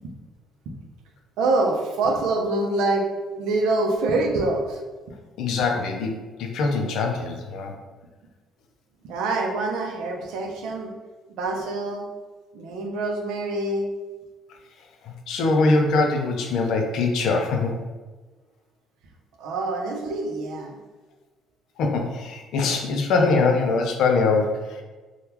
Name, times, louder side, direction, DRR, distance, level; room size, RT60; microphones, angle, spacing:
voice 1, 1.4-3.1 3.4-4.8 9.0-10.9 11.3-12.0 12.5-13.9 19.4-20.8, right 2 dB, 75° right, 1 dB, 0.6 m, -25 dB
voice 2, 5.4-6.1 6.4-7.7 15.0-17.8 21.8-24.8, left 3 dB, 60° left, 3 dB, 0.4 m, -23 dB
3.5 x 2.3 x 2.9 m, 1.3 s
cardioid pair, 180°, 0 cm